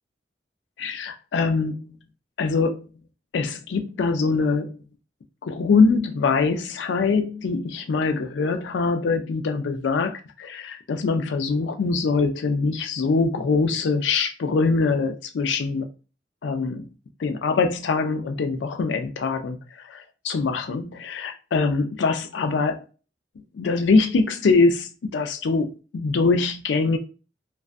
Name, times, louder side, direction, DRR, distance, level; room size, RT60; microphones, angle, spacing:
voice 1, 0.8-1.9 2.4-2.9 3.3-4.8 5.4-15.9 16.4-16.8 17.2-19.6 19.9-20.0 20.2-22.8 23.5-27.0, left 4 dB, 90° left, 0.4 m, -23 dB
2.4 x 2.2 x 2.4 m
head